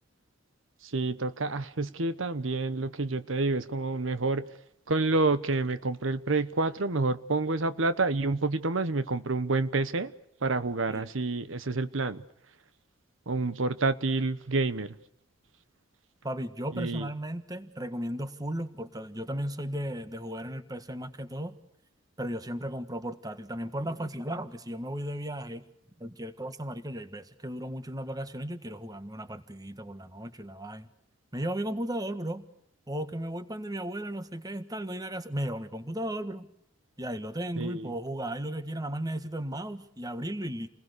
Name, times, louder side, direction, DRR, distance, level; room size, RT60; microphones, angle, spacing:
voice 1, 0.8-4.5 4.9-10.1 10.4-12.2 13.3-15.0 16.7-17.1 37.6-37.9, right 3 dB, 75° right, 1.0 m, -28 dB
voice 2, 16.2-21.5 22.2-25.6 26.0-30.9 31.3-32.4 32.9-36.5 37.0-40.7, right 1 dB, 20° right, 1.5 m, -35 dB
29.5 x 20.5 x 6.7 m
head